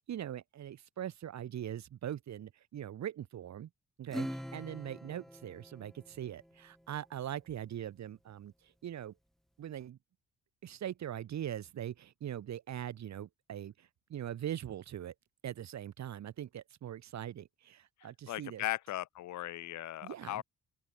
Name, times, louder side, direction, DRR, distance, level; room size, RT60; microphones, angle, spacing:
voice 1, 0.0-3.7 4.0-9.1 9.6-10.0 10.6-15.1 15.4-18.6 20.0-20.4, right 10 dB, 65° right, 2.5 m, -41 dB
Acoustic guitar / Strum, 4.1-7.0, equal, ahead, 1.1 m, -44 dB
voice 2, 18.0-20.4, left 14 dB, 70° left, 0.9 m, -38 dB
open air
cardioid pair, 90°, 30 cm